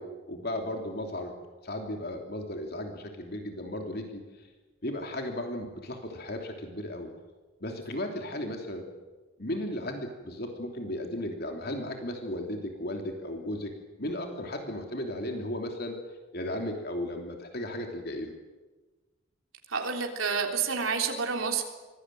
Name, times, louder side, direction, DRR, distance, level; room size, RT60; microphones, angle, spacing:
voice 1, 0.0-1.3 1.6-4.2 4.8-7.1 7.6-8.8 9.4-13.7 14.0-16.0 16.3-18.3, left 1 dB, 50° left, 3 dB, 3.1 m, -35 dB
voice 2, 19.7-21.6, right 5 dB, 85° right, 3 dB, 3.4 m, -29 dB
24.5 x 18.5 x 9.2 m, 1.2 s
head